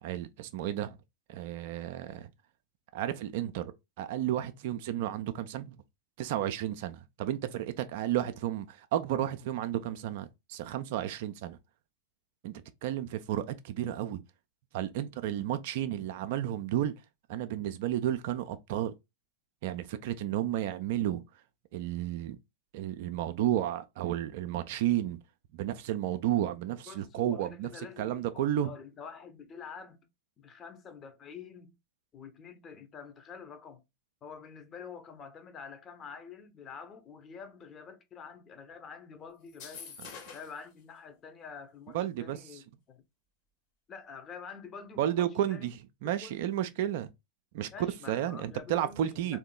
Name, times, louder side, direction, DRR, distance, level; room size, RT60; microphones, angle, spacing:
voice 1, 0.0-1.0 1.3-2.3 2.9-3.7 4.0-5.8 6.2-11.6 12.4-14.2 14.7-16.9 17.3-18.9 19.6-21.2 21.7-22.4 22.7-25.2 25.5-28.7 41.9-42.6 45.0-47.1 47.5-47.7 48.1-49.4, right 12 dB, 50° right, 0.4 m, -32 dB
voice 2, 26.9-30.1 30.4-31.8 32.1-33.8 34.2-40.0 40.3-43.0 43.9-45.7 46.2-46.5 47.7-49.4, left 6 dB, 25° left, 0.8 m, -47 dB
sound 1, 39.5-40.6, left 6 dB, 45° left, 1.3 m, -46 dB
3.6 x 2.7 x 3.7 m
figure-of-eight pair, 90°, 0 cm